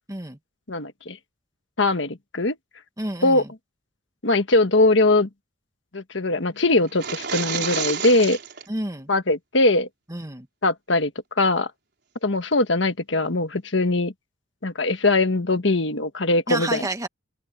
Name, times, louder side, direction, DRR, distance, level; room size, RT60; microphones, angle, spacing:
voice 1, 0.1-0.4 3.0-3.5 8.7-9.1 10.1-10.5 16.5-17.1, right 1 dB, 15° right, 1.5 m, -30 dB
voice 2, 0.7-1.2 1.8-2.6 3.2-3.4 4.2-5.3 5.9-8.4 9.1-9.9 10.6-11.1 11.4-11.7 12.2-14.1 14.6-16.9, left 2 dB, 65° left, 1.5 m, -21 dB
sound 1, 6.9-8.7, right 7 dB, 55° right, 4.7 m, -29 dB
open air
head